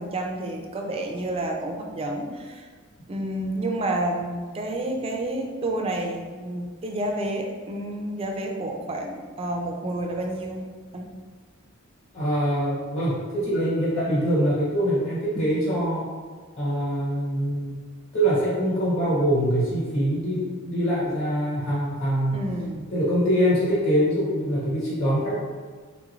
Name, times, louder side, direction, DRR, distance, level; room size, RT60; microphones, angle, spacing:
voice 1, 0.0-2.7 3.1-10.6 10.9-11.1 22.3-22.9, right 1 dB, 30° right, 2 dB, 0.3 m, -30 dB
voice 2, 12.1-16.1 16.5-17.8 18.1-22.4 22.9-25.4, equal, 60° left, -10 dB, 1.5 m, -24 dB
3.8 x 3.0 x 2.4 m, 1.5 s
head